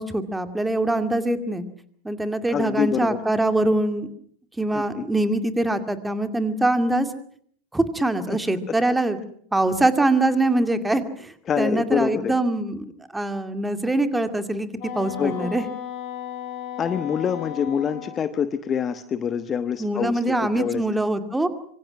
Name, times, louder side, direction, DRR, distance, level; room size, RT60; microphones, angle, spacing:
voice 1, 0.0-1.6 2.0-4.1 4.6-7.1 7.7-9.2 9.5-12.9 13.1-14.7 14.9-15.6 19.8-21.5, right 2 dB, 5° right, 9 dB, 2.3 m, -23 dB
voice 2, 2.5-3.2 4.7-5.0 8.3-8.4 8.7-8.8 11.5-12.3 15.2-15.5 16.8-20.8, left 7 dB, 25° left, 12 dB, 1.1 m, -26 dB
Wind instrument woodwind instrument, 14.8-18.2, left 9 dB, 40° left, 5.7 m, -35 dB
26.0 x 25.0 x 6.2 m, 0.62 s
figure-of-eight pair, 90°, 0 cm